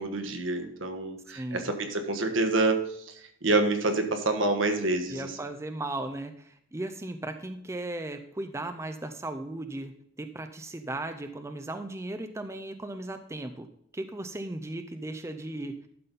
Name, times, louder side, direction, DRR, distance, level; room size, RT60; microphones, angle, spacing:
voice 1, 0.0-2.9 3.4-5.3, right 2 dB, 80° right, 6 dB, 1.3 m, -27 dB
voice 2, 1.3-1.7 5.1-9.9 10.2-13.7 13.9-15.9, right 2 dB, 15° right, 8 dB, 0.5 m, -36 dB
12.0 x 4.1 x 5.3 m, 0.67 s
head